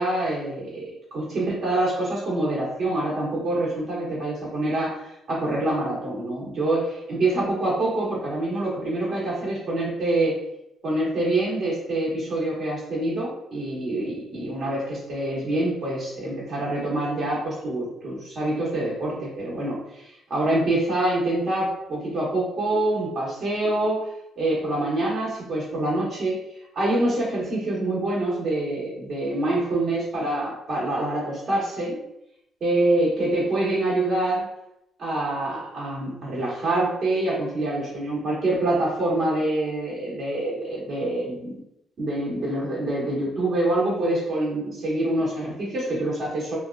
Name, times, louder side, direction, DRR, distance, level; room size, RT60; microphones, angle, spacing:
voice 1, 0.0-5.0 5.3-10.4 10.8-24.1 24.4-26.4 26.7-32.0 32.6-34.5 35.0-41.5 42.0-46.6, right 1 dB, 55° right, -5 dB, 1.2 m, -26 dB
3.0 x 2.2 x 2.4 m, 0.82 s
cardioid pair, 90°, 0 cm